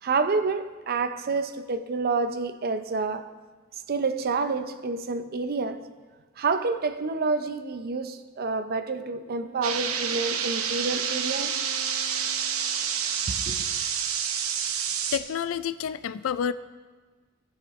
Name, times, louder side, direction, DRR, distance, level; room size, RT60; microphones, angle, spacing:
voice 1, 0.0-3.3 3.9-5.9 6.4-11.5 13.3-13.7, right 4 dB, 45° right, 0.5 m, -28 dB
Wind instrument woodwind instrument, 9.0-13.3, left 1 dB, 70° right, 2.0 m, -46 dB
sound 1, 9.6-15.2, right 7 dB, 90° right, 0.8 m, -28 dB
voice 2, 15.1-16.5, left 8 dB, 70° left, 0.4 m, -29 dB
17.5 x 7.3 x 3.1 m
head